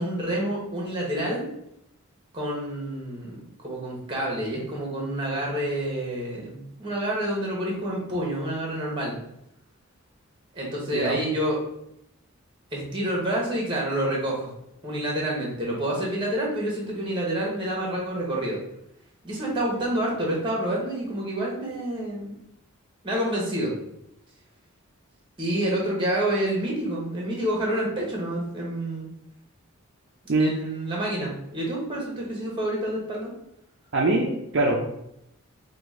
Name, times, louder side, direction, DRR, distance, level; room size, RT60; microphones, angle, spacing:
voice 1, 0.0-1.5 2.3-3.4 3.6-9.1 10.5-11.6 12.7-14.5 14.8-18.6 19.2-22.4 23.0-23.7 25.4-29.1 30.4-33.3, right 1 dB, 20° right, -3 dB, 1.2 m, -28 dB
voice 2, 33.9-34.8, right 2 dB, 55° right, -1 dB, 0.6 m, -23 dB
4.9 x 2.4 x 3.6 m, 0.80 s
head